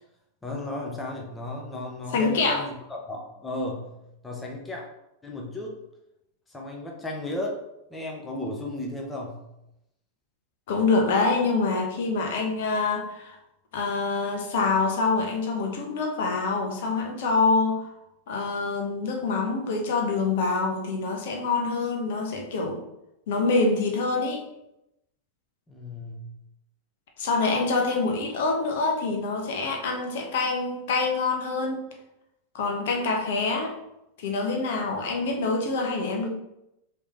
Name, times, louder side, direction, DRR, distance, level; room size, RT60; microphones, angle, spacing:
voice 1, 0.4-3.9 4.2-4.8 5.2-5.7 6.5-7.6 7.9-9.4 25.7-26.2, left 1 dB, 10° left, 0 dB, 0.9 m, -34 dB
voice 2, 2.1-2.6 10.7-13.4 13.7-17.9 18.3-22.8 23.3-24.4 27.2-31.8 32.5-33.7 34.2-36.3, left 3 dB, 55° left, 2 dB, 1.0 m, -25 dB
5.1 x 3.1 x 3.3 m, 0.86 s
figure-of-eight pair, 90°, 0 cm